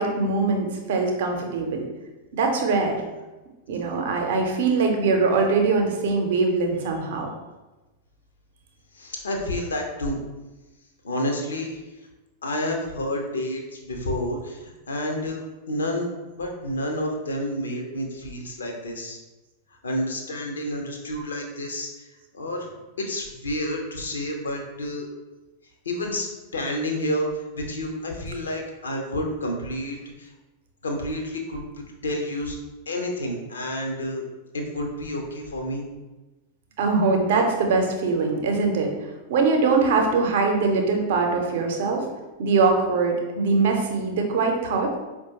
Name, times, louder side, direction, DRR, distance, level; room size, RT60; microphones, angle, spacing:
voice 1, 0.0-1.9 2.3-3.0 3.7-7.3 36.8-42.1 42.4-44.9, right 4 dB, 55° right, 2 dB, 0.6 m, -22 dB
voice 2, 8.9-10.2 11.0-11.8 12.4-15.4 15.7-16.1 16.3-19.2 19.8-22.1 22.3-22.7 23.0-25.1 25.8-30.3 30.8-31.6 32.0-32.6 32.9-34.2 34.5-35.9, left 1 dB, 70° left, 1 dB, 0.6 m, -29 dB
4.7 x 2.2 x 2.8 m, 1.1 s
figure-of-eight pair, 90°, 0 cm